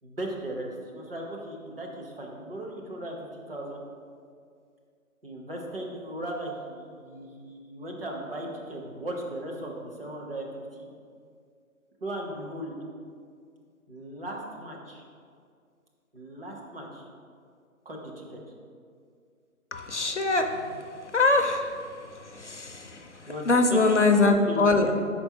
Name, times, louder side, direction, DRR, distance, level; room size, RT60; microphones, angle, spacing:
voice 1, 0.0-3.8 5.2-10.9 12.0-12.7 13.9-15.0 16.1-17.1 17.8-18.4 23.3-24.0 24.3-24.9, right 1 dB, 40° right, -1 dB, 1.0 m, -37 dB
voice 2, 19.7-20.8 21.1-21.7 22.2-23.1 23.5-24.9, left 3 dB, 55° left, 5 dB, 0.5 m, -23 dB
5.7 x 4.4 x 4.5 m, 2.2 s
figure-of-eight pair, 150°, 44 cm